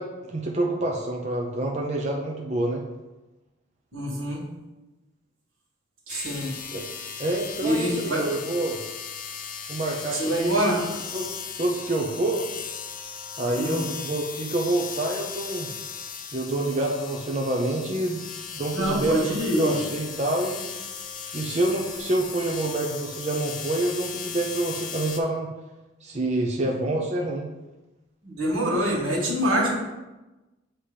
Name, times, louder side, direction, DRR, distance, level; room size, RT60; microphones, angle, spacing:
voice 1, 0.0-2.8 6.7-6.8 7.2-8.8 9.7-10.8 11.1-12.4 13.4-15.7 16.3-18.2 18.5-20.7 21.3-25.5 26.0-27.5, right 1 dB, 35° right, -1 dB, 0.5 m, -27 dB
voice 2, 3.9-4.4 6.1-6.5 7.6-8.2 10.1-10.8 13.5-13.8 18.7-19.8 28.2-29.8, equal, 90° right, -2 dB, 1.7 m, -25 dB
sound 1, 6.1-25.2, left 6 dB, 40° left, 0.5 m, -37 dB
6.7 x 2.9 x 5.0 m, 1.1 s
head